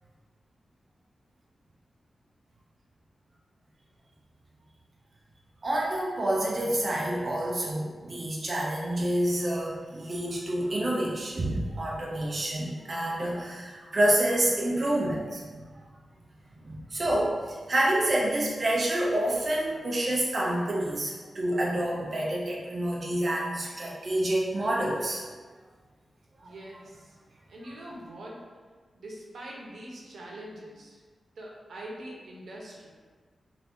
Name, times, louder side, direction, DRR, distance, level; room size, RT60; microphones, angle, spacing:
voice 1, 5.6-15.8 16.6-25.2 26.4-26.5, right 1 dB, 35° right, -3 dB, 0.4 m, -28 dB
voice 2, 26.4-27.1 27.5-28.4 28.9-31.0 31.4-32.9, right 1 dB, 85° right, -3 dB, 0.6 m, -43 dB
2.7 x 2.5 x 3.4 m, 1.5 s
wide cardioid pair, 170°, 0 cm